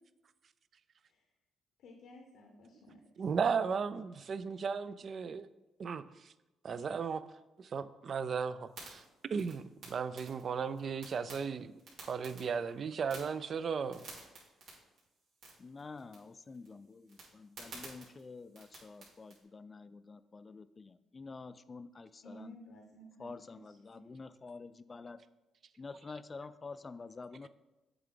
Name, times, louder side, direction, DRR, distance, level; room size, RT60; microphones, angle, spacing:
voice 1, 1.8-3.0 22.2-24.1, equal, 80° left, 0.8 m, -54 dB
voice 2, 3.2-5.5 5.8-6.3 6.6-7.2 7.6-9.0 9.3-11.7 12.0-14.1, right 6 dB, 50° right, 0.4 m, -35 dB
sound 1, 8.7-19.4, right 3 dB, 80° right, 2.6 m, -54 dB
voice 3, 15.6-22.6 23.2-25.2 25.8-27.5, left 4 dB, 30° left, 0.3 m, -48 dB
7.9 x 4.7 x 3.8 m
cardioid pair, 90°, 0 cm